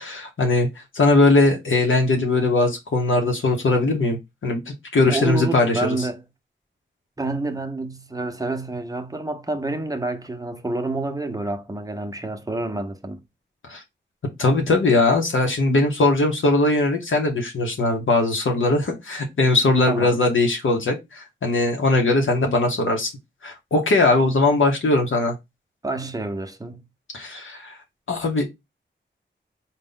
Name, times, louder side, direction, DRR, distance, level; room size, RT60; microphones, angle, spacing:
voice 1, 0.0-6.1 13.7-13.8 14.2-23.1 23.4-25.3 27.1-27.8 28.1-28.4, left 2 dB, 85° left, 0.8 m, -20 dB
voice 2, 5.1-6.2 7.2-13.2 19.9-20.2 25.8-26.8, right 2 dB, 20° right, 0.6 m, -28 dB
3.9 x 2.1 x 3.7 m
wide cardioid pair, 75°, 20 cm